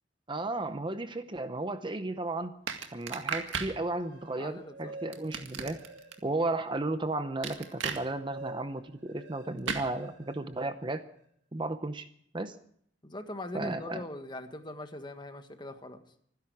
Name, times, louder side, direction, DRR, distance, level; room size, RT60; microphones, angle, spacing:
voice 1, 0.3-2.5 2.9-5.8 6.2-11.1 11.5-12.1 12.3-12.6 13.5-14.0, right 2 dB, 25° right, 10 dB, 0.7 m, -34 dB
sound 1, 2.7-3.7 5.1-6.1 7.4-8.0 9.7-9.9, right 5 dB, 90° right, 2.0 m, -34 dB
sound 2, 3.9-6.5 6.9-11.2, right 1 dB, 70° right, 4.3 m, -49 dB
voice 2, 4.4-5.0 5.2-5.4 13.0-16.0, left 1 dB, 25° left, 7 dB, 1.5 m, -41 dB
25.5 x 10.5 x 4.8 m, 0.66 s
head